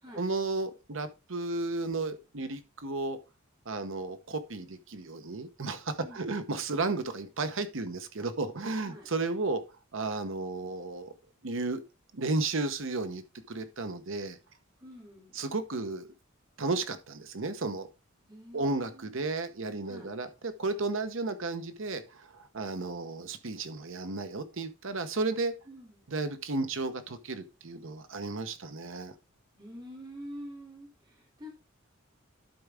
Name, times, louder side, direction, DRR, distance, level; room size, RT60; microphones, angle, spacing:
voice 1, 0.2-3.2 3.7-9.6 9.9-11.1 11.4-11.8 12.1-14.4 15.3-16.1 16.6-17.9 18.5-25.5 26.1-29.1, right 3 dB, 65° right, 0.9 m, -33 dB
voice 2, 6.0-6.3 8.8-9.1 14.8-15.4 18.3-19.2 19.8-20.1 25.7-26.0 29.6-31.5, equal, 20° right, 2.6 m, -47 dB
11.5 x 4.6 x 3.5 m
head